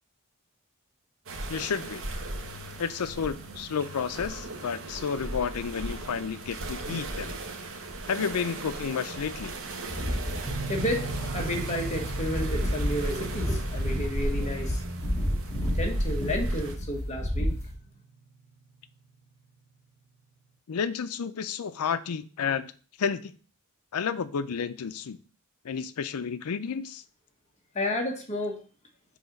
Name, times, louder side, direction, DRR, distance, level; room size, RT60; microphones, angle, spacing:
sound 1, 1.3-16.8, right 1 dB, 65° right, 0.9 m, -36 dB
voice 1, 1.5-2.0 2.8-7.4 8.1-9.5 20.7-22.7 23.0-23.3 23.9-25.2 25.6-27.0, left 6 dB, 85° left, 13 dB, 0.5 m, -31 dB
sound 2, 9.9-17.7, equal, 15° left, 1.6 m, -31 dB
sound 3, 10.4-19.2, right 4 dB, 35° right, 0.7 m, -41 dB
voice 2, 10.7-14.8 15.7-17.5 27.7-28.6, left 1 dB, 30° left, 2 dB, 1.2 m, -31 dB
6.4 x 2.9 x 5.2 m, 0.38 s
head